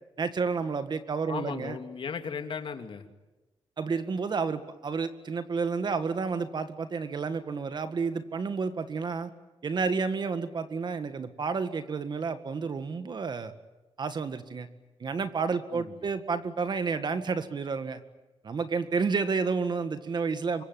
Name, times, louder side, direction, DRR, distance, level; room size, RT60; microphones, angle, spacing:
voice 1, 0.2-1.8 3.8-9.3 9.6-13.5 14.0-14.7 15.0-18.0 18.4-20.6, right 5 dB, 50° right, 10 dB, 1.8 m, -30 dB
voice 2, 1.3-3.0 15.7-15.9, left 6 dB, 60° left, 6 dB, 2.8 m, -36 dB
26.0 x 23.0 x 9.6 m, 1.1 s
wide cardioid pair, 130°, 10 cm